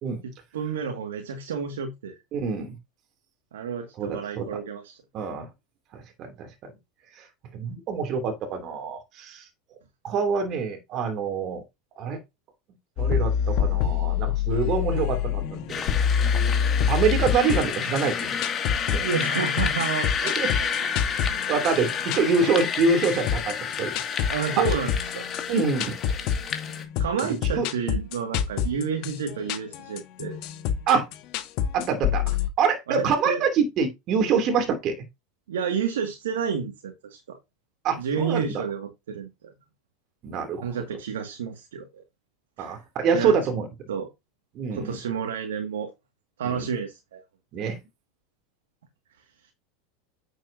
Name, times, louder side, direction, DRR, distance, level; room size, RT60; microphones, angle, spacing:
voice 1, 0.5-2.2 3.5-5.0 19.0-20.9 24.3-25.3 27.0-30.4 32.9-33.4 35.5-37.4 38.0-39.5 40.6-42.0 42.6-42.8 43.1-43.3 43.9-44.1 44.7-45.9 46.4-47.2, right 6 dB, 85° right, 2.1 m, -30 dB
voice 2, 2.3-2.8 4.0-4.6 5.1-5.5 5.9-6.7 7.2-7.3 7.5-9.5 10.0-11.6 12.0-12.2 13.0-15.8 16.9-18.4 18.9-19.1 20.4-20.5 20.8-21.0 21.5-23.9 24.2-24.3 25.5-26.2 27.6-27.7 30.9-31.1 31.7-34.9 37.8-38.6 40.2-40.7 42.6-43.7 44.5-45.0 46.4-46.7 47.5-47.8, right 5 dB, 45° right, 3.0 m, -26 dB
sound 1, 13.0-32.5, left 8 dB, 55° left, 1.6 m, -27 dB
sound 2, 15.7-26.8, left 7 dB, 30° left, 2.4 m, -30 dB
9.0 x 7.8 x 2.8 m
hypercardioid pair, 105°, 0 cm